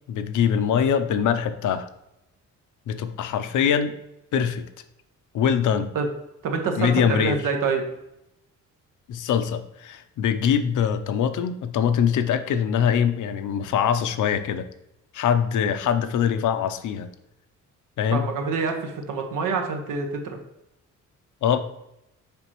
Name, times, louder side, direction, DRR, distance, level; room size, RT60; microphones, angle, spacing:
voice 1, 0.1-1.9 2.9-3.9 4.3-4.7 5.3-5.9 6.8-7.4 9.1-14.7 15.1-17.1 18.0-18.2 21.4-21.6, left 8 dB, 70° left, 9 dB, 0.6 m, -23 dB
voice 2, 6.4-7.9 18.1-20.4, right 5 dB, 85° right, 4 dB, 1.2 m, -26 dB
6.8 x 5.0 x 3.0 m, 0.86 s
cardioid pair, 135°, 31 cm